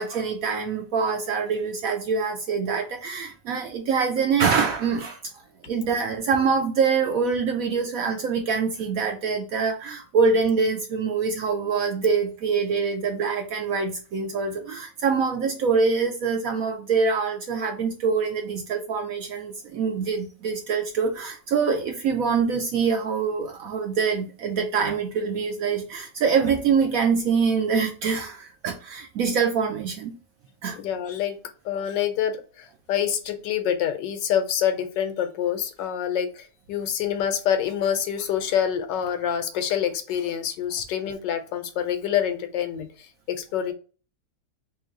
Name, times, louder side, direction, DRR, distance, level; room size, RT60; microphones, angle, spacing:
voice 1, 0.0-5.2 5.7-30.1 30.6-30.8, right 5 dB, 70° right, 0.8 m, -24 dB
voice 2, 30.8-31.4 31.6-43.7, left 9 dB, 85° left, 1.3 m, -26 dB
3.1 x 3.0 x 3.6 m
omnidirectional pair, 1.9 m